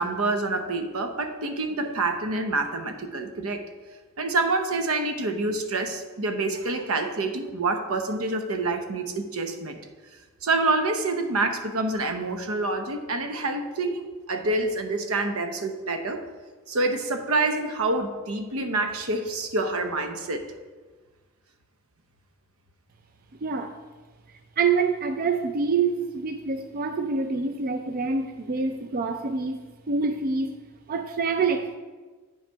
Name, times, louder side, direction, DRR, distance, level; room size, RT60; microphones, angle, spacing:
voice 1, 0.0-3.7 4.2-9.8 10.4-16.2 16.7-20.4, right 2 dB, 80° right, 7 dB, 0.8 m, -27 dB
voice 2, 23.4-23.8 24.6-29.6 29.9-30.6 30.9-31.8, right 4 dB, 40° right, 6 dB, 0.4 m, -26 dB
9.5 x 5.0 x 4.5 m, 1.3 s
head